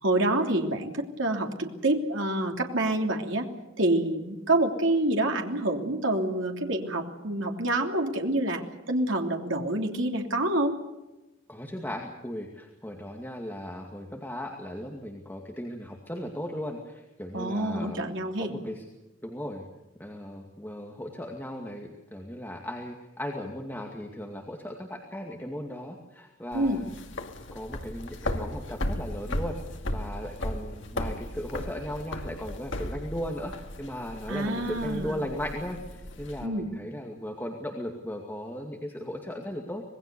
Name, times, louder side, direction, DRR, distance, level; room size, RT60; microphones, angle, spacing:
voice 1, 0.0-3.5 3.8-8.6 8.9-10.8 17.3-18.5 26.5-26.8 34.3-35.2 36.4-36.7, right 1 dB, 70° right, 3 dB, 3.2 m, -27 dB
voice 2, 11.5-18.0 18.4-18.8 19.2-19.6 20.0-26.9 27.5-29.6 29.9-39.8, equal, 10° left, 1 dB, 2.3 m, -37 dB
sound 1, 26.5-36.5, left 1 dB, 65° left, 2.3 m, -36 dB
26.0 x 20.5 x 6.9 m, 1.0 s
head